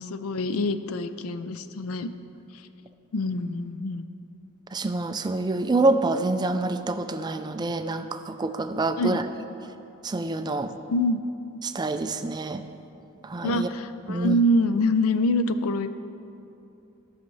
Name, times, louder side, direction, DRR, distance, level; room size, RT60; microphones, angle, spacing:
voice 1, 0.0-2.1 2.5-2.7 3.1-4.0 9.0-9.2 10.9-11.2 13.4-16.0, left 1 dB, 75° left, 11 dB, 0.4 m, -25 dB
voice 2, 4.7-9.2 10.0-10.7 11.6-12.6 13.2-13.7 14.1-14.4, right 2 dB, 20° right, 8 dB, 0.3 m, -26 dB
16.0 x 5.7 x 3.1 m, 2.8 s
head